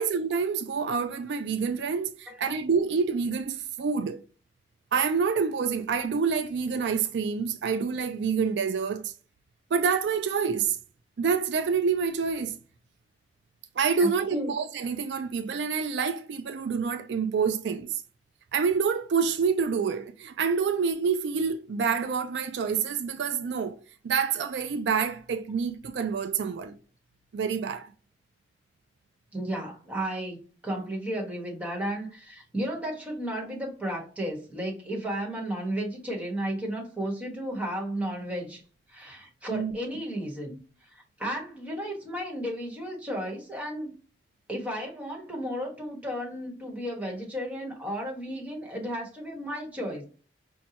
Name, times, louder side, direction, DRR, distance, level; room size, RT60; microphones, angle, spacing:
voice 1, 0.0-4.2 4.9-9.1 9.7-10.8 11.2-12.6 13.8-18.0 18.5-23.8 24.0-26.8 27.3-27.9 39.5-39.8, right 5 dB, 70° right, 0.4 m, -27 dB
voice 2, 14.0-14.6 29.3-30.4 30.6-38.6 38.9-40.6 40.9-43.9 44.5-50.1, right 1 dB, 10° right, 1.3 m, -33 dB
5.3 x 2.3 x 2.8 m
head